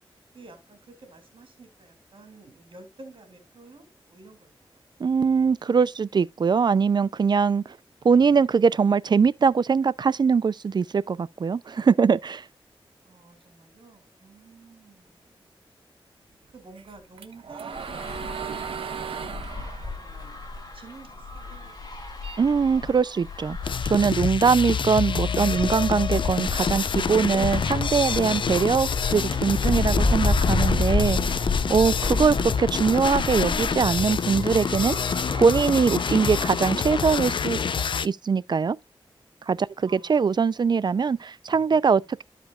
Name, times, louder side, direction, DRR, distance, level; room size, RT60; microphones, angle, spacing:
voice 1, 0.3-4.8 13.0-15.6 16.5-18.9 19.8-20.4 20.7-22.7 39.8-40.2 42.0-42.1, right 3 dB, 70° right, 2.9 m, -50 dB
voice 2, 5.0-7.6 8.0-12.4 22.4-23.6 23.8-31.4 31.7-35.0 35.3-37.6 38.0-38.8 39.5-42.2, right 5 dB, 50° right, 0.4 m, -22 dB
sound 1, 16.8-21.3 21.7-23.2, right 7 dB, 90° right, 0.9 m, -37 dB
sound 2, 17.7-37.5, left 3 dB, 45° left, 1.9 m, -31 dB
sound 3, 23.6-38.1, left 6 dB, 60° left, 0.4 m, -27 dB
13.5 x 5.1 x 2.3 m
wide cardioid pair, 75°, 9 cm